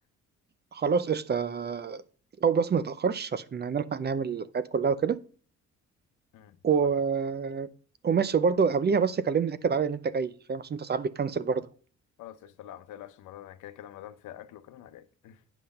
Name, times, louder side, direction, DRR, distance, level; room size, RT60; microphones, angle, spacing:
voice 1, 0.7-2.0 2.4-5.2 6.6-7.7 8.0-11.7, right 6 dB, 35° right, 0.6 m, -27 dB
voice 2, 12.2-15.4, left 12 dB, 85° left, 0.8 m, -46 dB
9.3 x 5.6 x 5.5 m
cardioid pair, 90°, 30 cm